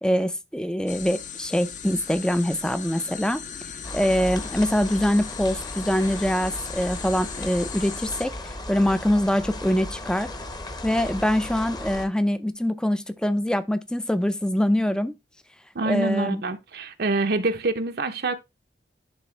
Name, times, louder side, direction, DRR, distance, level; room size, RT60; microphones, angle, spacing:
voice 1, 0.0-3.4 3.9-10.3 10.8-15.2 15.8-16.4, equal, 5° left, 0.5 m, -24 dB
sound 1, 0.9-8.3, left 7 dB, 45° left, 0.9 m, -38 dB
sound 2, 3.8-12.1, left 1 dB, 20° left, 1.0 m, -36 dB
voice 2, 15.7-18.3, right 2 dB, 55° right, 0.7 m, -26 dB
10.5 x 3.6 x 3.3 m
head